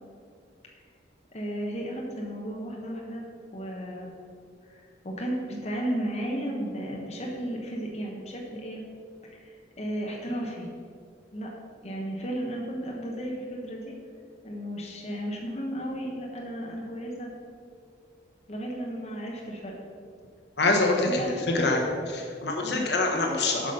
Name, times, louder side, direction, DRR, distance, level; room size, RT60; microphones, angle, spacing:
voice 1, 1.3-3.3 3.5-4.1 4.7-8.8 9.3-10.7 11.3-11.5 11.8-14.0 14.4-17.3 18.5-19.7 21.0-21.7 22.6-22.8, right 1 dB, 35° left, -1 dB, 1.0 m, -34 dB
voice 2, 20.6-21.2 21.5-21.8 22.1-23.7, left 2 dB, 65° left, 1 dB, 1.1 m, -25 dB
8.4 x 5.1 x 5.4 m, 2.3 s
head